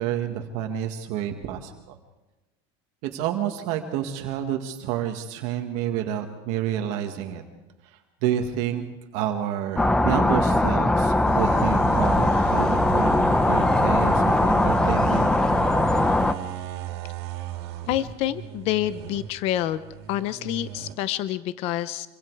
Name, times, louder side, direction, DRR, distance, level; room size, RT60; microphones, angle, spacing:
voice 1, 0.0-2.0 3.1-7.4 7.8-8.8 9.1-15.3, right 10 dB, 55° right, 4 dB, 1.8 m, -29 dB
sound 1, 9.8-16.3, left 2 dB, 5° left, 0.7 m, -20 dB
sound 2, 11.2-20.9, right 12 dB, 80° right, 2.7 m, -35 dB
voice 2, 17.9-19.8 20.1-22.1, left 13 dB, 50° left, 14 dB, 0.8 m, -27 dB
26.0 x 24.5 x 4.8 m, 1.0 s
cardioid pair, 160°, 14 cm